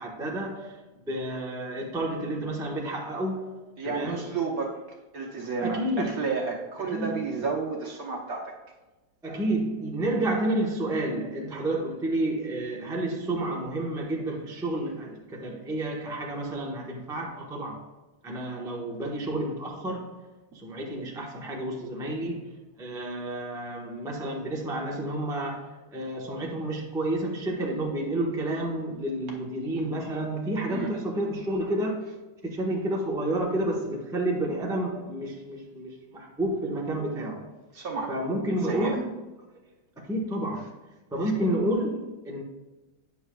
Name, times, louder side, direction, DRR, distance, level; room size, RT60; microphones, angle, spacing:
voice 1, 0.0-4.3 5.6-6.1 6.9-7.2 9.2-17.9 18.2-32.1 32.4-37.6 38.1-39.2 40.0-40.7 41.1-42.4, right 1 dB, 5° right, 0.6 m, -30 dB
voice 2, 3.8-8.6 20.5-20.6 30.7-30.9 37.7-38.2 38.7-39.0, right 4 dB, 55° right, 1.3 m, -32 dB
9.8 x 6.8 x 2.3 m
omnidirectional pair, 2.2 m